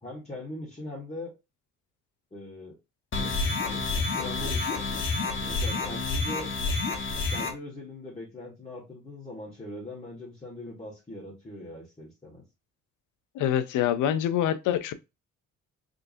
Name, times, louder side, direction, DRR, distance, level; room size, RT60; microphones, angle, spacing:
voice 1, 0.0-1.3 2.3-2.8 4.2-4.8 5.5-6.5 7.3-12.4, left 1 dB, 20° left, 1.7 m, -40 dB
sound 1, 3.1-7.5, left 3 dB, 40° left, 1.4 m, -29 dB
voice 2, 13.3-14.9, left 10 dB, 85° left, 0.6 m, -25 dB
3.8 x 3.4 x 2.7 m
cardioid pair, 90°, 30 cm